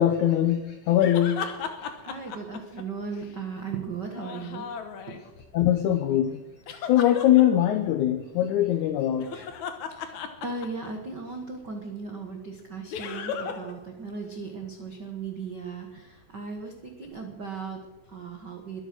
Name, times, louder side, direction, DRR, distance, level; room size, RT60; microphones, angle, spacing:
voice 1, 0.0-1.7 5.5-6.4 6.9-9.5, left 11 dB, 90° left, 1.7 m, -22 dB
sound 1, 1.0-3.3 4.1-5.5 6.7-7.4 9.1-11.1 12.9-13.7 14.0-14.1 17.0-17.1, left 7 dB, 65° left, 2.2 m, -36 dB
voice 2, 2.0-4.7 9.9-18.8, right 4 dB, 75° right, 0.9 m, -37 dB
22.0 x 9.1 x 6.1 m
omnidirectional pair, 4.5 m